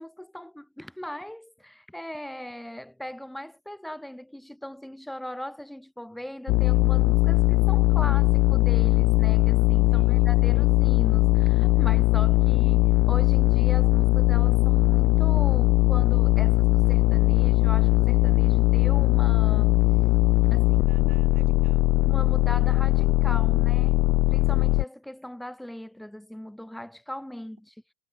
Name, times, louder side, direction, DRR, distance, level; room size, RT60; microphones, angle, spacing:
voice 1, 0.0-19.9 20.5-20.6 21.4-21.5 22.0-27.7, equal, ahead, 0.9 m, -39 dB
sound 1, 6.5-24.8, left 21 dB, 45° left, 0.4 m, -20 dB
voice 2, 9.9-10.7 20.5-21.9, right 14 dB, 85° right, 5.1 m, -53 dB
supercardioid pair, 145°, 6 cm